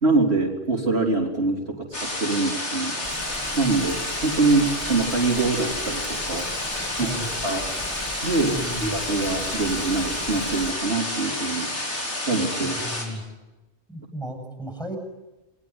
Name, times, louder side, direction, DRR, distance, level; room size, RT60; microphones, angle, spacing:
voice 1, 0.0-3.0 3.6-6.5 7.0-7.1 7.4-7.6 8.2-11.7 12.3-12.8, right 3 dB, 70° right, 0 dB, 3.9 m, -24 dB
sound 1, 1.9-13.0, left 1 dB, 85° left, 4.8 m, -30 dB
Rain, 3.0-10.7, left 2 dB, 25° left, 1.8 m, -39 dB
voice 2, 7.0-7.3 8.5-9.0 12.6-13.2 13.9-15.0, right 1 dB, 5° left, 4 dB, 7.5 m, -34 dB
29.0 x 21.5 x 9.6 m, 1.1 s
omnidirectional pair, 1.1 m